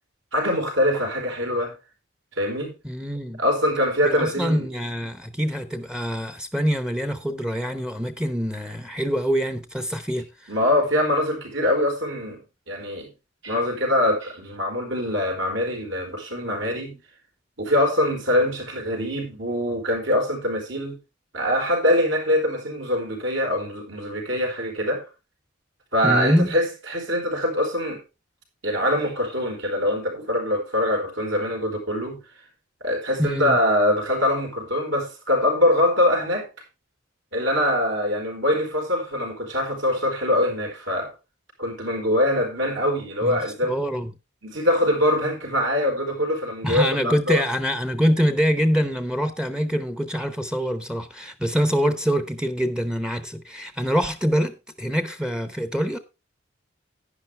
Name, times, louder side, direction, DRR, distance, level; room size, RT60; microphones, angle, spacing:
voice 1, 0.3-1.7 2.4-2.7 3.4-4.6 10.5-12.4 12.7-13.1 13.4-17.0 17.6-21.0 21.3-25.0 25.9-28.0 28.6-32.2 32.8-36.5 37.3-41.1 41.6-43.7 44.4-47.4, left 1 dB, 70° right, 4.5 m, -23 dB
voice 2, 2.8-3.4 4.0-10.5 26.0-26.5 33.2-33.6 43.2-44.1 46.6-56.0, equal, 5° right, 0.8 m, -25 dB
10.5 x 10.5 x 3.3 m
head